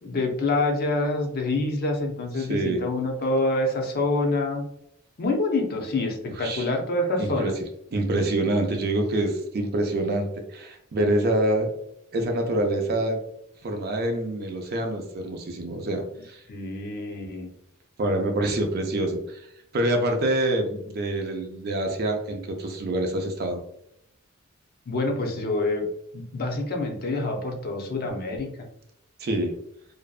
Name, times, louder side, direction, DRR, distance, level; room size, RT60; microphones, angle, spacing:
voice 1, 0.0-4.6 5.2-7.5 16.5-17.5 24.9-25.8 26.1-28.5, left 2 dB, 45° left, 2 dB, 0.5 m, -26 dB
voice 2, 2.4-2.8 6.4-6.7 7.2-7.5 7.9-11.7 12.1-13.2 13.6-16.4 18.0-19.5 19.7-23.6 29.2-29.5, right 1 dB, 50° right, 4 dB, 0.4 m, -26 dB
2.6 x 2.2 x 2.3 m, 0.75 s
head